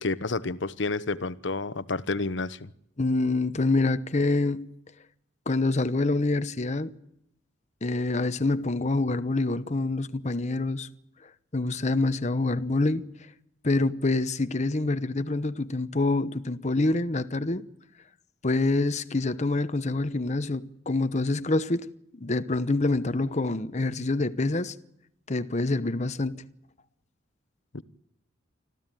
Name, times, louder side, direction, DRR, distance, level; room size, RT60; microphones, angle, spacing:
voice 1, 0.0-2.7 27.7-27.8, left 3 dB, 70° left, 1.0 m, -30 dB
voice 2, 3.0-4.7 5.5-6.9 7.8-10.9 11.5-13.1 13.6-17.6 18.4-21.9 22.1-24.7 25.3-26.4, left 2 dB, 40° left, 1.0 m, -26 dB
25.5 x 15.0 x 9.1 m
head